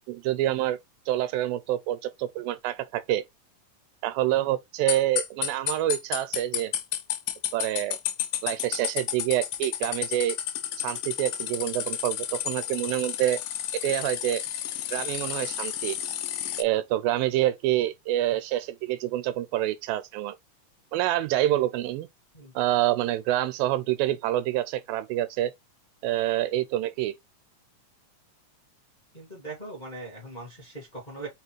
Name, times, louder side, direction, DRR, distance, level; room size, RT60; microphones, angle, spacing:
voice 1, 0.1-0.8 1.1-3.2 4.0-6.7 7.5-8.0 8.4-10.4 10.8-13.4 13.8-14.4 14.9-16.0 16.6-20.4 20.9-22.1 22.6-25.5 26.0-27.1, right 14 dB, 90° right, 2.4 m, -27 dB
sound 1, 4.9-16.6, left 11 dB, 75° left, 2.0 m, -31 dB
voice 2, 29.1-31.3, right 2 dB, 35° left, 0.7 m, -40 dB
5.4 x 2.4 x 3.0 m
omnidirectional pair, 4.0 m